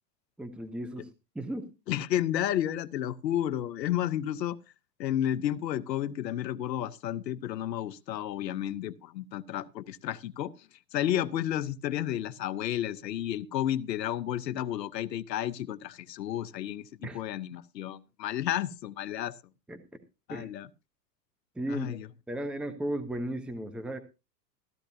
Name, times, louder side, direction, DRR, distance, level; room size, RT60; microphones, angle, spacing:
voice 1, 0.4-1.1 1.3-1.7 17.0-17.2 19.7-20.0 20.3-20.5 21.6-22.0 22.3-24.0, right 1 dB, ahead, 0.8 m, -35 dB
voice 2, 1.9-4.6 5.0-10.5 10.9-19.3 20.3-20.7 21.7-22.1, left 11 dB, 80° left, 0.9 m, -32 dB
15.0 x 13.0 x 2.7 m
hypercardioid pair, 120°, 49 cm